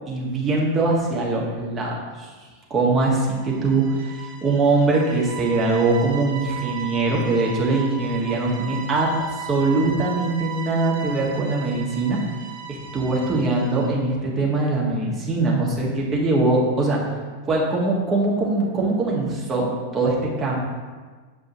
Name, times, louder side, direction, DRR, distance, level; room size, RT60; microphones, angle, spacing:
voice 1, 0.1-2.3 2.7-9.1 9.5-12.2 12.7-17.0 17.5-20.5, right 3 dB, 25° right, -3 dB, 1.5 m, -22 dB
sound 1, 3.2-14.0, right 7 dB, 55° right, 1.1 m, -36 dB
7.6 x 5.3 x 2.9 m, 1.4 s
figure-of-eight pair, 90°, 0 cm